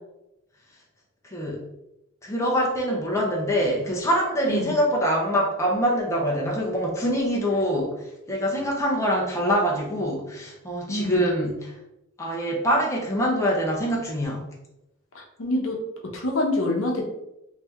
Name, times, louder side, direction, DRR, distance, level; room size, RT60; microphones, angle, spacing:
voice 1, 1.3-1.6 2.2-7.9 8.3-11.7 12.2-14.4, equal, 15° left, -3 dB, 0.6 m, -24 dB
voice 2, 10.9-11.2 15.1-15.8 16.1-17.1, left 1 dB, 65° left, 0 dB, 0.8 m, -26 dB
3.3 x 2.7 x 3.5 m, 0.88 s
head